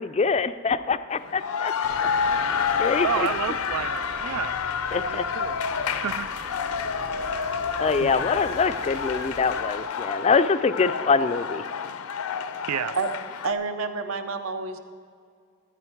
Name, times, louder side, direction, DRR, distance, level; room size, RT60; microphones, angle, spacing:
voice 1, 0.0-2.1 2.4-3.3 4.9-5.3 7.8-11.6, left 4 dB, 30° left, 12 dB, 0.3 m, -24 dB
sound 1, 1.2-13.5, left 6 dB, 80° left, 0.5 m, -29 dB
sound 2, 1.8-9.6, right 2 dB, 30° right, 0.7 m, -41 dB
voice 2, 3.0-4.6 5.1-5.6 6.0-6.3 8.0-8.1 12.7-12.9, right 9 dB, 90° right, 16 dB, 0.4 m, -30 dB
voice 3, 13.4-14.8, right 4 dB, 65° right, 8 dB, 0.8 m, -28 dB
13.5 x 9.7 x 4.6 m, 2.1 s
head